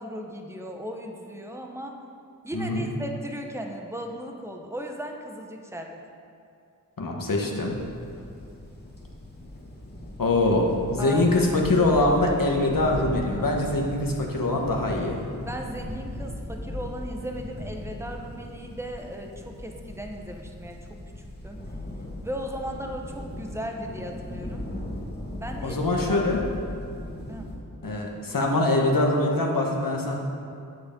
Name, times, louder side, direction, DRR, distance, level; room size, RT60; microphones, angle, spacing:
voice 1, 0.0-2.0 2.4-6.0 11.0-11.3 15.4-21.6 22.2-24.7 25.4-25.8 26.1-26.3 27.3-27.5, equal, 10° right, 2 dB, 1.1 m, -36 dB
voice 2, 7.0-7.8 10.2-15.2 25.6-26.4 27.8-30.1, left 2 dB, 65° left, -1 dB, 1.4 m, -23 dB
sound 1, 7.7-27.6, left 1 dB, 30° left, 2.0 m, -37 dB
9.4 x 8.0 x 5.3 m, 2.5 s
wide cardioid pair, 70°, 35 cm